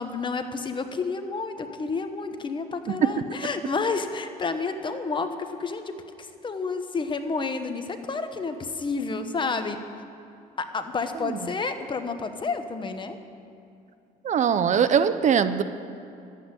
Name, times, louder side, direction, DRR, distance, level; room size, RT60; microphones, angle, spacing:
voice 1, 0.0-9.8 10.6-13.2, left 4 dB, 30° left, 8 dB, 1.0 m, -30 dB
voice 2, 14.2-15.6, right 7 dB, 45° right, 12 dB, 0.6 m, -21 dB
12.5 x 8.5 x 9.6 m, 2.6 s
cardioid pair, 110°, 17 cm